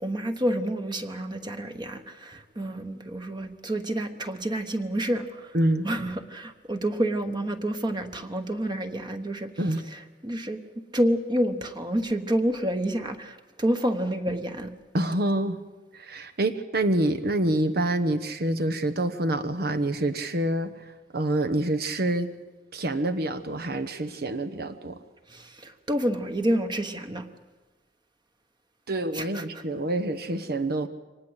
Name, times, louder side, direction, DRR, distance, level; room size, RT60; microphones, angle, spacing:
voice 1, 0.0-5.5 5.8-9.5 10.2-10.6 10.9-14.7 25.3-27.3 29.1-29.4, right 1 dB, 25° right, 6 dB, 1.2 m, -28 dB
voice 2, 5.5-5.9 9.6-9.8 14.9-15.6 15.9-20.7 21.1-22.3 22.7-25.0 28.9-30.9, right 1 dB, 60° right, 9 dB, 1.0 m, -26 dB
24.0 x 19.0 x 8.2 m, 1.2 s
head